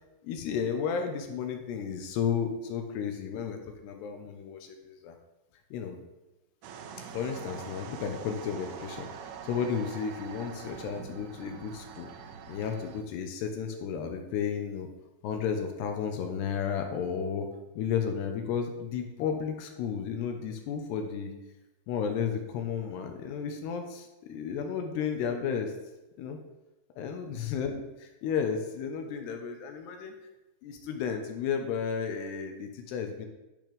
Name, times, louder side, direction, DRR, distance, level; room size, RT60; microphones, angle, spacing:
voice 1, 0.2-5.2 5.7-6.0 7.1-9.1 9.4-12.1 12.5-14.9 15.2-17.5 17.8-21.3 21.9-25.7 26.2-26.4 27.0-30.1 30.6-33.3, left 7 dB, 75° left, 5 dB, 2.9 m, -33 dB
sound 1, 6.6-13.0, right 7 dB, 75° right, 2.8 m, -44 dB
10.5 x 5.9 x 5.2 m, 1.0 s
omnidirectional pair, 5.1 m